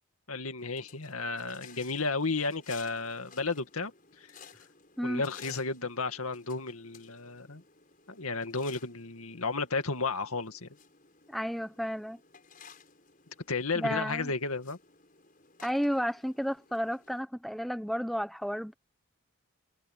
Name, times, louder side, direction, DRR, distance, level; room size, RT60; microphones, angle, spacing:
voice 1, 0.3-4.6 5.0-7.6 8.1-10.7 13.5-14.8, left 3 dB, 85° left, 2.2 m, -33 dB
sound 1, 0.6-17.2, left 6 dB, 40° left, 6.9 m, -56 dB
voice 2, 11.3-12.2 13.8-14.3 15.6-18.7, equal, ahead, 0.9 m, -32 dB
head